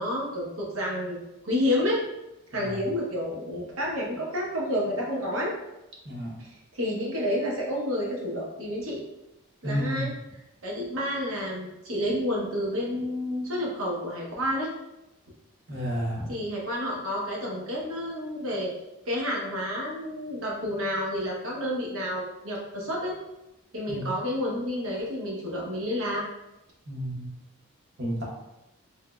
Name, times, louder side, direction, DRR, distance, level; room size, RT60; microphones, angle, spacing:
voice 1, 0.0-2.0 2.5-5.5 6.4-6.5 6.7-9.0 9.6-10.1 10.6-14.7 16.3-18.7 19.1-23.1 23.7-26.2, left 1 dB, 75° right, -3 dB, 1.0 m, -30 dB
voice 2, 9.6-10.1 15.7-16.3 23.9-24.1 26.9-27.3 28.0-28.2, equal, 50° right, -3 dB, 0.9 m, -30 dB
3.5 x 2.9 x 2.3 m, 0.95 s
head